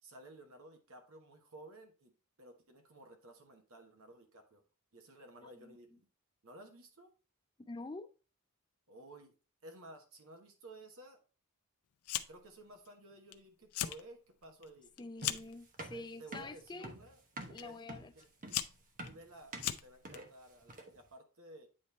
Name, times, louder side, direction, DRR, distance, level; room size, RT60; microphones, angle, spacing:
voice 1, 0.0-2.1 2.4-4.6 4.9-6.1 6.4-7.1 8.9-9.3 9.6-11.2 12.3-14.9 15.9-17.2 17.6-18.3 19.0-21.7, right 2 dB, 65° right, 1.1 m, -55 dB
voice 2, 5.4-6.0 7.7-8.1 15.0-16.9 17.4-18.1, left 3 dB, 20° left, 0.4 m, -47 dB
Fire, 12.0-12.5 12.9-13.3 13.6-14.0 14.4-15.6 16.4-16.7 17.6-17.7 18.2-20.2, left 12 dB, 75° left, 0.5 m, -38 dB
sound 1, 15.2-21.1, right 2 dB, 40° right, 0.9 m, -48 dB
8.8 x 3.2 x 4.2 m
head